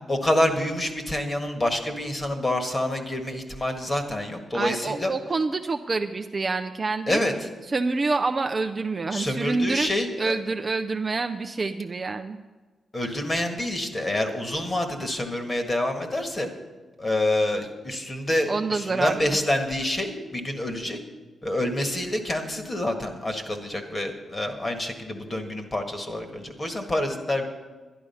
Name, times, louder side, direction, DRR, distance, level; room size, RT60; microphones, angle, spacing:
voice 1, 0.1-5.1 7.1-7.3 9.1-10.3 12.9-16.5 17.0-21.0 21.4-27.5, left 1 dB, 25° left, 5 dB, 1.6 m, -27 dB
voice 2, 4.5-7.2 7.7-9.9 10.2-12.4 18.5-19.3, right 3 dB, 30° right, 6 dB, 0.5 m, -27 dB
11.5 x 11.0 x 5.6 m, 1.3 s
wide cardioid pair, 115°, 0 cm